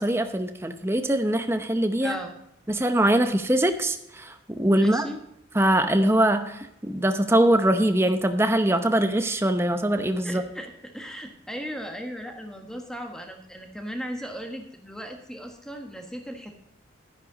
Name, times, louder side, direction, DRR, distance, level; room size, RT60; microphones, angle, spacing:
voice 1, 0.0-2.2 2.7-5.1 5.6-10.4, right 1 dB, 10° right, 8 dB, 0.7 m, -22 dB
voice 2, 2.0-2.3 4.8-5.2 10.2-16.5, equal, 5° left, 3 dB, 1.4 m, -36 dB
11.5 x 10.5 x 3.9 m, 0.81 s
head